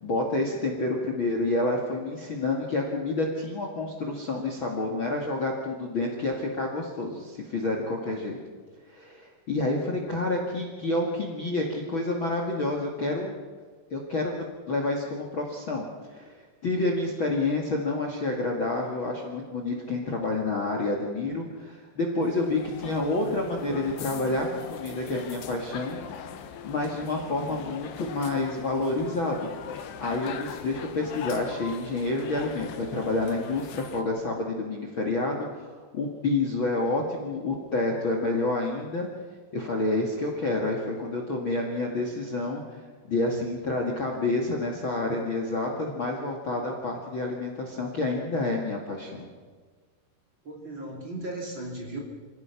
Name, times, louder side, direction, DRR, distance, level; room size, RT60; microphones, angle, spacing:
voice 1, 0.0-8.4 8.9-13.4 13.9-26.0 26.6-29.5 30.0-39.1 39.5-49.3, left 2 dB, 40° left, 1 dB, 2.1 m, -29 dB
sound 1, 22.2-34.0, left 7 dB, 80° left, 3.4 m, -41 dB
voice 2, 50.4-52.0, right 2 dB, 35° right, 0 dB, 2.9 m, -36 dB
26.5 x 16.5 x 5.9 m, 1.5 s
omnidirectional pair, 4.7 m